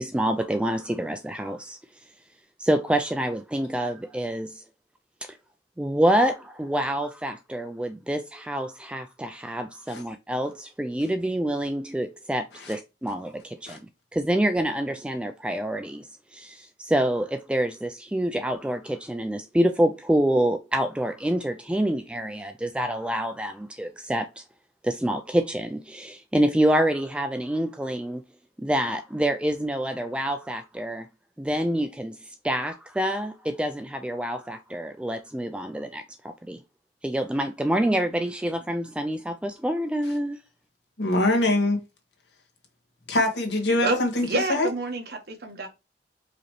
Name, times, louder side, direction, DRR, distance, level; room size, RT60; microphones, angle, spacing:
voice 1, 0.0-1.8 2.6-4.6 5.2-5.4 5.8-13.8 14.1-24.4 24.8-28.2 28.6-31.1 31.4-36.6 37.0-40.4, right 1 dB, 5° right, 0.3 m, -27 dB
voice 2, 41.0-41.8 43.1-44.7, left 2 dB, 80° left, 1.5 m, -24 dB
voice 3, 43.8-45.7, right 2 dB, 60° right, 1.3 m, -28 dB
4.9 x 3.0 x 3.1 m
head